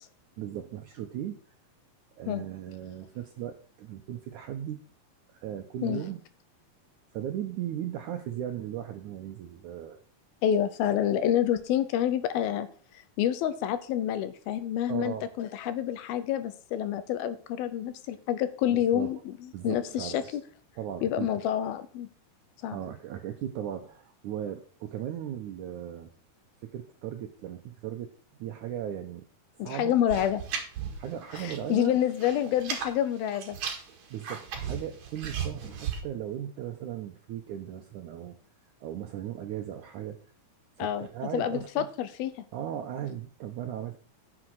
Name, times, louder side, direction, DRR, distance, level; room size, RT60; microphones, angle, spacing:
voice 1, 0.4-1.4 2.2-4.8 5.4-6.2 7.1-10.0 14.9-15.3 18.7-19.1 19.5-20.4 20.8-21.3 22.7-26.1 26.6-28.1 28.4-29.2 29.6-29.9 31.0-31.9 34.1-38.3 38.8-40.2 40.8-41.9 42.5-44.0, right 10 dB, 75° right, 5 dB, 1.8 m, -37 dB
voice 2, 10.4-12.7 13.2-19.3 19.6-20.4 21.0-22.1 22.6-22.8 29.6-30.4 31.4-33.6 40.8-41.1 41.3-42.3, left 10 dB, 75° left, 13 dB, 2.6 m, -28 dB
sound 1, 30.1-31.7 32.0-32.9 33.3-36.0, right 7 dB, 50° right, 2.8 m, -35 dB
9.9 x 7.6 x 4.7 m, 0.43 s
omnidirectional pair, 4.5 m